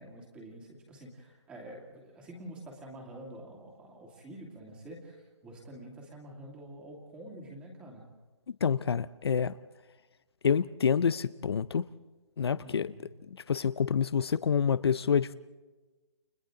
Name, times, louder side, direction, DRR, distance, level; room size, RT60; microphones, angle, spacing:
voice 1, 0.0-8.1 12.6-13.1, right 1 dB, 5° right, 0 dB, 2.3 m, -47 dB
voice 2, 8.6-9.6 10.4-11.8 12.4-12.9 13.5-15.3, left 7 dB, 60° left, 15 dB, 0.5 m, -27 dB
30.0 x 25.5 x 3.8 m, 1.3 s
hypercardioid pair, 175°, 15 cm